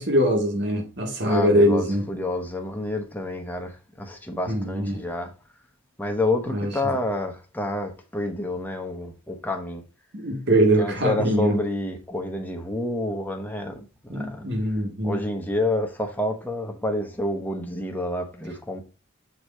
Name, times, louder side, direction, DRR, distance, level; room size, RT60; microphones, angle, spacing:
voice 1, 0.0-2.1 4.5-5.0 6.5-7.0 10.1-11.6 14.1-15.2, equal, 50° right, 1.8 m, -22 dB
voice 2, 1.2-5.3 6.0-9.8 10.8-14.5 15.0-18.8, left 1 dB, 10° left, 0.9 m, -29 dB
6.5 x 3.9 x 4.3 m
head